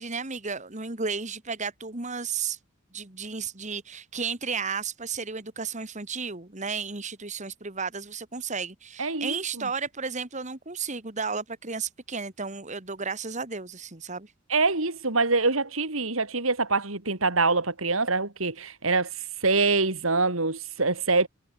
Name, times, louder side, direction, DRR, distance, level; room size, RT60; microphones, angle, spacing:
voice 1, 0.0-2.6 2.9-14.3, right 5 dB, 35° right, 2.1 m, -33 dB
voice 2, 9.0-9.7 14.5-19.1 19.4-21.3, right 3 dB, 80° right, 3.6 m, -25 dB
head